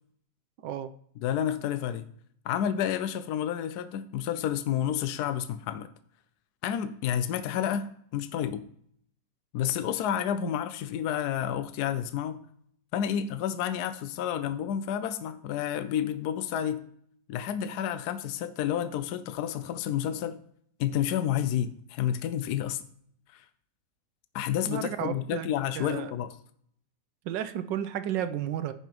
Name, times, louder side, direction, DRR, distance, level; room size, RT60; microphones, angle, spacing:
voice 1, 1.2-2.0 2.4-5.9 6.6-8.7 9.5-12.4 12.9-16.9 17.3-20.4 20.8-22.8 23.3-23.5 24.3-26.4, left 10 dB, 70° left, 11 dB, 1.0 m, -30 dB
voice 2, 24.6-25.5 25.8-26.1 27.3-28.7, right 10 dB, 85° right, 10 dB, 1.3 m, -32 dB
15.0 x 5.7 x 3.0 m, 0.66 s
omnidirectional pair, 1.9 m